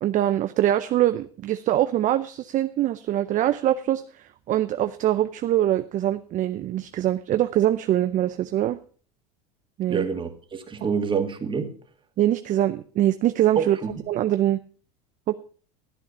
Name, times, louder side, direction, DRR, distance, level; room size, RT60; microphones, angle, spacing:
voice 1, 0.0-8.8 9.8-10.1 12.2-13.8 14.1-14.6 15.3-15.4, right 12 dB, 40° right, 0.6 m, -23 dB
voice 2, 9.9-11.7 13.6-13.9, right 6 dB, 25° right, 2.2 m, -27 dB
13.5 x 8.3 x 5.5 m
hypercardioid pair, 95°, 20 cm